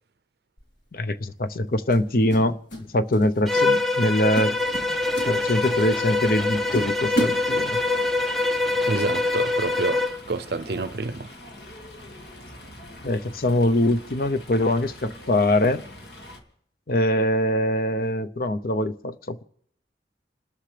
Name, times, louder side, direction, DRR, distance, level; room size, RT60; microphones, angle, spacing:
sound 1, 0.6-0.8 1.9-2.9 3.1-3.4 3.9-4.1 4.3-5.9 6.3-6.4 6.7-8.1, right 1 dB, 85° left, 3.4 m, -31 dB
voice 1, 0.9-2.6 2.9-4.5 5.2-7.8 13.0-15.8 16.9-19.4, left 1 dB, 55° left, 0.7 m, -23 dB
Bowed string instrument, 3.5-10.2, left 2 dB, ahead, 0.7 m, -24 dB
Fowl, 4.6-16.4, left 1 dB, 70° left, 2.2 m, -44 dB
voice 2, 8.8-11.3, right 3 dB, 60° right, 0.6 m, -28 dB
29.0 x 13.5 x 3.4 m
head